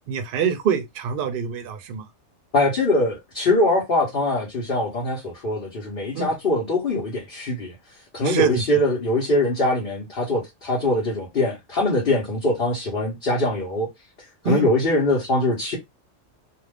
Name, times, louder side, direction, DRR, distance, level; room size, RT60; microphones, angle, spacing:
voice 1, 0.1-2.0 6.1-6.3 8.2-8.6 14.4-14.7, right 6 dB, 55° right, 0.7 m, -24 dB
voice 2, 2.5-7.8 8.1-13.9 14.4-15.8, left 2 dB, 50° left, 1.0 m, -22 dB
2.4 x 2.4 x 3.3 m
omnidirectional pair, 1.3 m